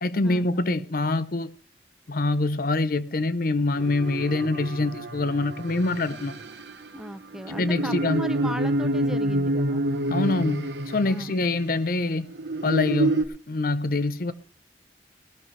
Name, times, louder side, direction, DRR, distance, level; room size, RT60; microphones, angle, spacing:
voice 1, 0.0-1.5 2.1-6.4 7.5-8.2 10.1-12.3 12.6-14.3, left 2 dB, 55° left, 0.8 m, -25 dB
sound 1, 3.8-11.6 12.3-13.2, right 1 dB, 75° right, 1.2 m, -28 dB
voice 2, 6.9-9.9 11.0-11.4, equal, 5° right, 0.6 m, -36 dB
18.0 x 12.0 x 3.3 m
head